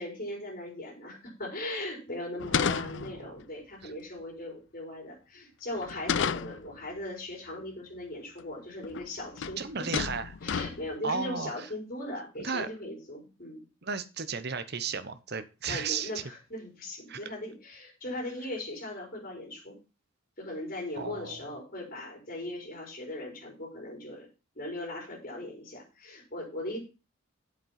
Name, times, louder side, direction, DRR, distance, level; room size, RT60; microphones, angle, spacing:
voice 1, 0.0-9.6 10.0-10.1 10.4-13.6 15.7-19.8 20.4-24.3 24.6-26.8, left 1 dB, 40° left, -2 dB, 5.0 m, -39 dB
sound 1, 2.4-3.4 5.8-6.7 8.4-8.5 8.8-9.1 9.4-9.6 9.9-11.0, left 7 dB, 60° left, 0.4 m, -31 dB
voice 2, 2.5-3.1 3.8-3.9 9.6-10.3 11.0-11.7 12.4-12.7 13.8-16.1 17.1-17.3 21.0-21.4, right 5 dB, 50° right, 12 dB, 1.0 m, -34 dB
8.4 x 7.6 x 5.8 m, 0.31 s
head